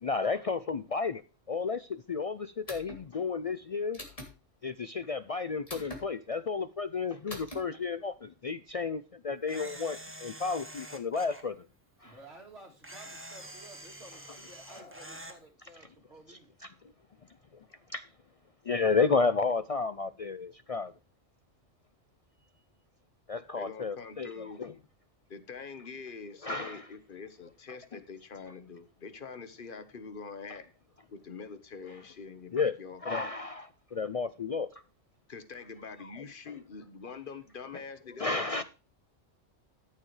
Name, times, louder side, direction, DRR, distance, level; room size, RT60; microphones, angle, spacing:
voice 1, 0.0-1.2 1.5-4.0 4.6-11.6 12.0-12.2 16.3-16.4 17.9-18.0 18.7-20.9 23.3-24.7 26.4-26.8 32.5-32.7 33.0-34.7 38.2-38.6, left 4 dB, 65° left, 0.3 m, -32 dB
sound 1, 2.7-3.0 3.9-4.3 5.7-6.0 7.3-7.6, left 1 dB, 30° left, 2.6 m, -42 dB
Camera, 9.5-11.4 12.8-15.4, right 1 dB, 10° right, 1.4 m, -46 dB
voice 2, 12.0-16.5, right 2 dB, 60° right, 2.2 m, -53 dB
voice 3, 23.5-24.6 25.3-30.7 31.1-33.0 35.3-38.6, left 5 dB, 45° left, 1.3 m, -44 dB
13.5 x 7.5 x 3.2 m
omnidirectional pair, 1.3 m